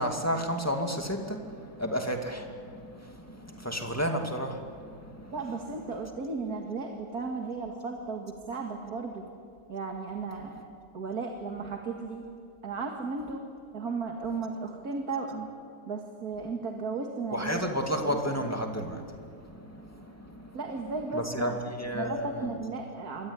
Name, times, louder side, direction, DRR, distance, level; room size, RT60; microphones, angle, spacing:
voice 1, 0.0-5.3 10.4-10.6 17.3-20.6 21.1-22.6, equal, 10° left, 3 dB, 2.2 m, -32 dB
voice 2, 5.3-9.2 9.7-10.5 10.9-12.3 12.6-13.4 13.7-15.5 15.9-17.8 20.5-21.6 21.9-23.3, right 4 dB, 65° right, 2 dB, 2.5 m, -35 dB
26.5 x 22.5 x 9.8 m, 2.4 s
omnidirectional pair, 1.8 m